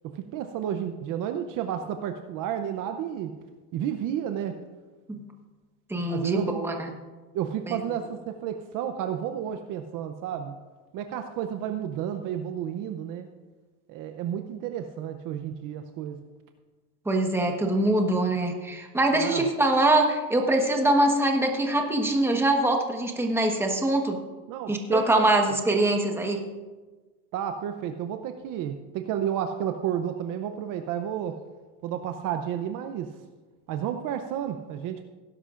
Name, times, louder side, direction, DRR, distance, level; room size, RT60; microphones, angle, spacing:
voice 1, 0.0-3.3 3.7-4.6 6.1-6.5 7.3-10.5 10.9-13.3 13.9-16.2 19.1-19.4 24.5-25.3 27.3-31.4 31.8-33.1 33.7-35.0, right 9 dB, 45° right, 7 dB, 0.7 m, -31 dB
voice 2, 5.9-6.9 7.7-7.8 17.0-24.2 24.7-26.4, right 1 dB, 5° right, 2 dB, 1.2 m, -23 dB
18.5 x 11.0 x 2.5 m, 1.3 s
supercardioid pair, 135°, 45 cm